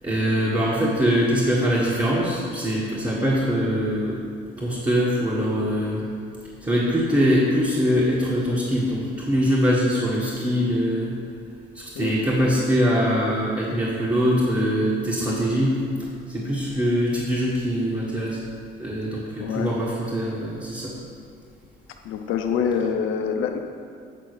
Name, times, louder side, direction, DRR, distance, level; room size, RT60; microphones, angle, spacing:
voice 1, 0.0-4.2 4.6-6.0 6.6-11.1 11.7-18.4 18.8-20.9, equal, 20° right, -7 dB, 1.5 m, -23 dB
voice 2, 19.4-19.7 22.0-23.6, left 7 dB, 90° left, 5 dB, 0.7 m, -25 dB
8.3 x 3.9 x 6.6 m, 2.3 s
cardioid pair, 90°, 20 cm